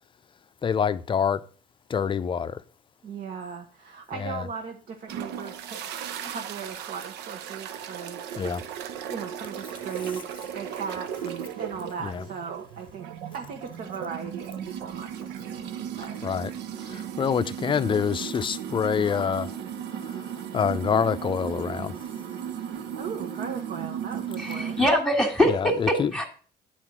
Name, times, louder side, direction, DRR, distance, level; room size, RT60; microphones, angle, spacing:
voice 1, 0.6-1.5 1.9-2.6 4.1-4.5 8.4-8.6 12.0-12.3 16.2-16.5 16.8-19.6 20.0-21.9 25.5-26.1, left 7 dB, 30° left, 0.5 m, -26 dB
voice 2, 3.0-5.8 6.2-8.2 9.1-13.1 13.3-16.2 22.7-24.8, right 6 dB, 55° right, 1.1 m, -38 dB
sound 1, 5.1-24.9, right 9 dB, 90° right, 0.7 m, -36 dB
voice 3, 24.4-26.2, equal, 5° left, 1.6 m, -23 dB
9.2 x 4.4 x 6.0 m
cardioid pair, 110°, 17 cm